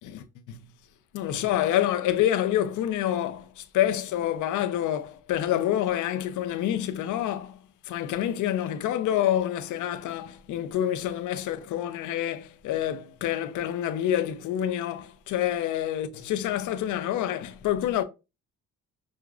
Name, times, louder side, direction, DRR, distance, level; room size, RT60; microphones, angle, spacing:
voice 1, 0.0-0.7 1.1-7.6 7.8-18.0, left 11 dB, 80° left, 0.6 m, -27 dB
6.2 x 2.2 x 2.4 m
cardioid pair, 90°, 30 cm